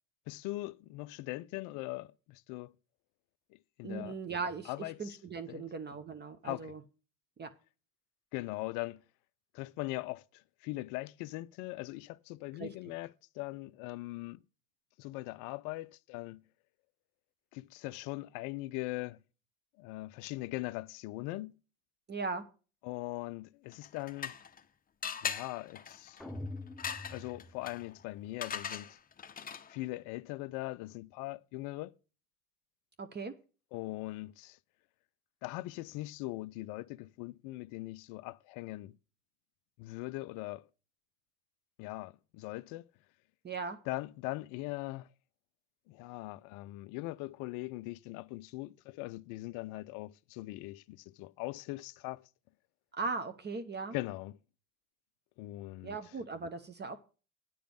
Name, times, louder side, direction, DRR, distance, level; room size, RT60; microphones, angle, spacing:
voice 1, 0.3-2.7 3.5-4.2 4.7-5.2 5.5-5.7 6.4-6.7 8.3-9.0 9.5-14.4 15.0-16.4 17.5-19.2 19.8-21.6 22.8-24.3 25.0-26.2 27.1-29.0 29.7-32.0 33.7-34.6 35.4-39.0 39.8-40.7 41.8-42.9 43.9-45.1 45.9-52.3 53.9-54.3 55.4-56.0, left 19 dB, 50° left, 0.5 m, -41 dB
voice 2, 3.8-6.8 7.4-7.5 12.6-12.7 22.1-22.4 33.0-33.3 43.4-43.8 52.9-53.9 55.8-57.0, right 4 dB, 25° right, 0.9 m, -38 dB
sound 1, 23.7-24.6 25.0-29.9, left 7 dB, 20° left, 0.8 m, -41 dB
sound 2, 26.2-28.3, left 2 dB, ahead, 1.0 m, -45 dB
9.4 x 5.1 x 7.6 m
hypercardioid pair, 70°, 41 cm